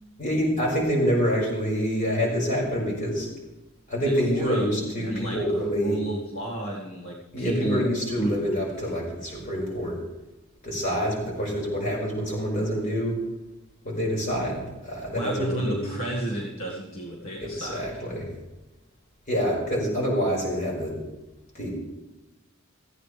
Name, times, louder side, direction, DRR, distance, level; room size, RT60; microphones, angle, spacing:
voice 1, 0.2-3.3 3.9-6.0 7.3-10.0 10.6-13.2 13.8-15.9 17.4-18.3 19.3-21.0 21.5-21.7, equal, 35° left, -3 dB, 5.3 m, -26 dB
voice 2, 4.0-5.4 5.7-8.4 14.4-14.5 15.2-17.9, right 1 dB, 65° left, -3 dB, 1.9 m, -31 dB
17.5 x 14.5 x 3.4 m, 1.0 s
head